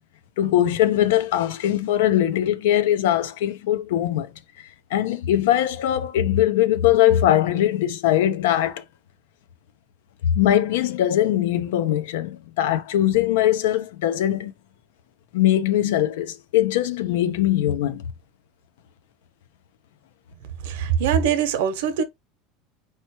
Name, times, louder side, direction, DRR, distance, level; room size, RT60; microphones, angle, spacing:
voice 1, 0.4-4.3 4.9-8.8 10.2-14.5 15.3-18.0, left 12 dB, 85° left, 0.7 m, -21 dB
voice 2, 20.6-22.0, right 8 dB, 70° right, 0.8 m, -22 dB
4.4 x 3.0 x 3.0 m
supercardioid pair, 175°, 0 cm